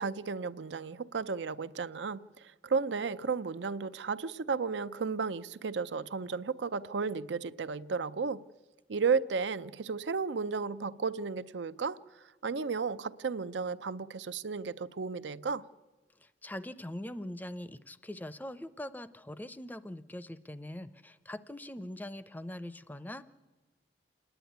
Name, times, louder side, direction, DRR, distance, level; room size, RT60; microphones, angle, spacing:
voice 1, 0.0-8.4 8.9-12.0 12.4-15.6, right 5 dB, 90° right, 0.6 m, -33 dB
voice 2, 16.2-23.2, left 1 dB, 10° left, 0.5 m, -42 dB
28.0 x 10.0 x 9.3 m
head